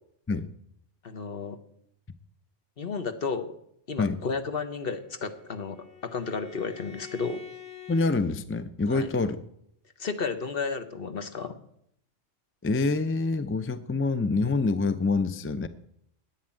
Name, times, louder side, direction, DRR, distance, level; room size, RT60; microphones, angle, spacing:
voice 1, 1.0-1.6 2.8-3.5 3.9-7.4 8.9-9.1 10.0-11.6, left 5 dB, 50° left, 9 dB, 1.3 m, -32 dB
Bowed string instrument, 4.6-8.2, left 7 dB, 70° left, 2.4 m, -47 dB
voice 2, 7.9-9.4 12.6-15.7, left 3 dB, 20° left, 12 dB, 0.3 m, -26 dB
11.5 x 9.4 x 8.9 m, 0.72 s
omnidirectional pair, 1.3 m